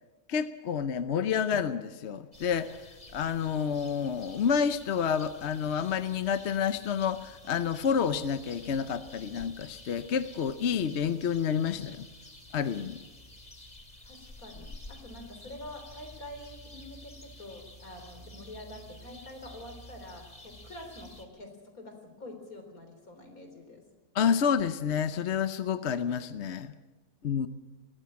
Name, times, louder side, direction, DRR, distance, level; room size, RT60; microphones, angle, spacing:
voice 1, 0.3-12.1 12.5-13.0 24.1-26.7 27.2-27.5, left 7 dB, 55° left, 11 dB, 1.0 m, -29 dB
sound 1, 2.3-21.3, left 1 dB, 30° left, 2.5 m, -50 dB
voice 2, 14.0-23.9, left 1 dB, 70° left, 5 dB, 4.1 m, -46 dB
20.5 x 15.5 x 8.7 m, 1.2 s
omnidirectional pair, 1.5 m